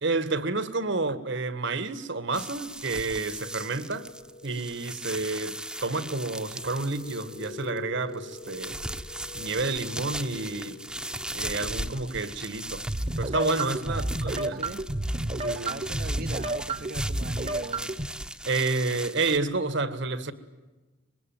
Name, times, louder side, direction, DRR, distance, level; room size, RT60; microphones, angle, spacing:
voice 1, 0.0-4.1 4.4-8.8 9.3-10.8 11.3-12.9 13.2-14.6 15.4-15.8 18.5-20.3, right 3 dB, 65° right, 1.8 m, -30 dB
sound 1, 2.3-7.8 8.1-19.4, right 1 dB, 5° right, 1.0 m, -38 dB
sound 2, 3.4-12.2, left 4 dB, 35° left, 0.8 m, -47 dB
sound 3, 12.9-18.1, right 1 dB, 35° right, 1.2 m, -30 dB
voice 2, 13.8-14.2 14.5-14.8 15.6-18.0, right 3 dB, 50° right, 0.9 m, -41 dB
25.0 x 21.5 x 9.2 m
head